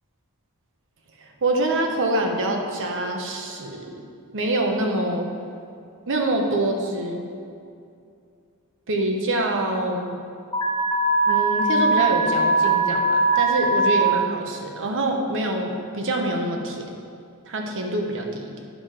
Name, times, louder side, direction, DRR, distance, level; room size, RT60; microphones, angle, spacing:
voice 1, 1.2-4.0 4.3-5.3 6.1-7.2 8.9-10.2 11.2-17.0 17.5-18.5, right 1 dB, 60° right, 2 dB, 1.0 m, -25 dB
Alarm, 10.5-14.0, right 2 dB, 20° left, 1.2 m, -20 dB
9.6 x 5.0 x 5.7 m, 2.4 s
head